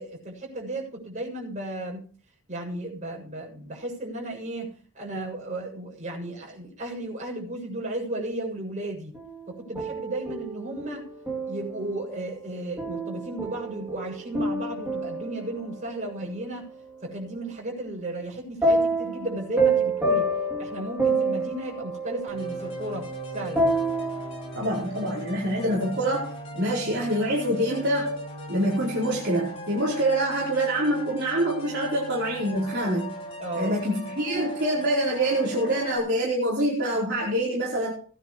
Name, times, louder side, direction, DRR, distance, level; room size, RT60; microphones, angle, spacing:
voice 1, 0.0-2.1 2.5-9.1 9.5-11.1 11.5-16.7 17.0-20.3 20.6-23.1 23.3-23.7 33.4-33.8, right 1 dB, 35° right, -1 dB, 7.3 m, -34 dB
sound 1, 9.1-11.8 12.8-16.1 18.6-24.7, right 2 dB, 10° right, 3.0 m, -28 dB
sound 2, 22.3-36.0, right 1 dB, 25° left, 4.3 m, -39 dB
voice 2, 24.5-28.2 28.5-33.1 33.5-37.9, right 1 dB, 50° right, -6 dB, 4.5 m, -25 dB
19.0 x 10.0 x 3.3 m, 0.43 s
head